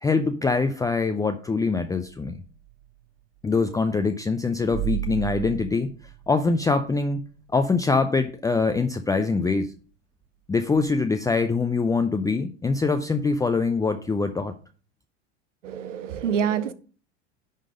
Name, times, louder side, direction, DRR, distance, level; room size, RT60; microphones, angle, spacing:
voice 1, 0.0-2.4 3.4-5.9 6.3-7.2 7.5-9.7 10.5-14.5, left 4 dB, 10° left, 0.5 m, -24 dB
sound 1, 1.8-3.1 4.6-7.2 7.7-7.8 10.8-10.9, right 18 dB, 45° right, 1.2 m, -34 dB
voice 2, 15.6-16.7, right 8 dB, 85° right, 0.8 m, -26 dB
10.5 x 3.8 x 4.9 m
hypercardioid pair, 90°, 36 cm